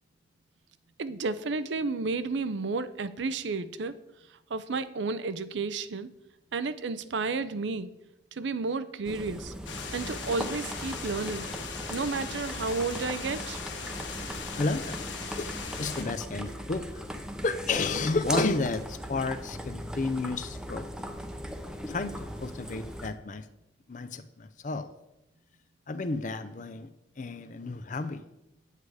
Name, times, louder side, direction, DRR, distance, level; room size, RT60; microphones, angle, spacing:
voice 1, 1.0-3.9 4.5-6.1 6.5-7.9 8.3-9.5 9.9-11.5 11.9-13.6, right 4 dB, 75° right, 13 dB, 0.6 m, -32 dB
sound 1, 9.0-23.1, equal, 5° right, 0.6 m, -38 dB
sound 2, 9.7-16.0, left 5 dB, 85° left, 1.4 m, -39 dB
voice 2, 14.5-15.0 15.4-15.5 15.8-17.0 17.4-20.9 21.8-23.5 23.9-24.9 25.9-26.9 27.2-28.2, left 3 dB, 45° left, 11 dB, 0.5 m, -31 dB
8.4 x 8.3 x 4.8 m, 0.91 s
head